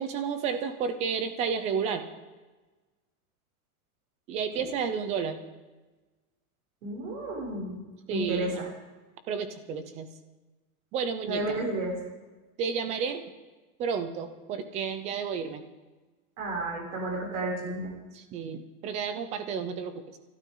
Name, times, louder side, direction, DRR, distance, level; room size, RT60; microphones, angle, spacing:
voice 1, 0.0-2.1 4.3-5.4 8.1-8.5 9.3-10.1 10.9-11.6 12.6-13.2 13.8-15.6 18.1-20.2, right 6 dB, 15° right, 10 dB, 0.6 m, -31 dB
voice 2, 6.8-7.8 8.1-8.7 11.2-11.9 16.4-17.9, right 2 dB, 70° right, -2 dB, 6.6 m, -32 dB
29.0 x 12.5 x 3.9 m, 1.2 s
supercardioid pair, 175°, 43 cm